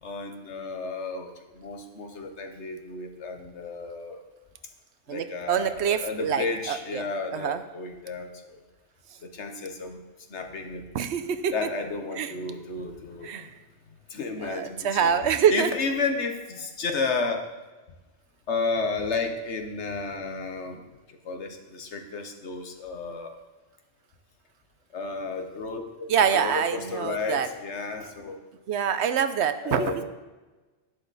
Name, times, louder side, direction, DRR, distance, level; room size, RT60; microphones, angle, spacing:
voice 1, 0.0-4.2 5.1-8.3 9.2-10.0 10.3-10.8 11.5-13.5 14.1-15.1 15.5-17.5 18.5-20.8 21.2-23.3 24.9-28.4 29.6-30.0, left 4 dB, 80° left, 5 dB, 1.4 m, -32 dB
voice 2, 5.1-7.1 7.3-7.6 10.9-11.5 12.2-12.3 13.2-13.5 14.4-15.7 26.1-27.5 28.7-30.0, right 8 dB, 75° right, 11 dB, 1.0 m, -25 dB
11.0 x 9.8 x 4.1 m, 1.2 s
omnidirectional pair, 1.2 m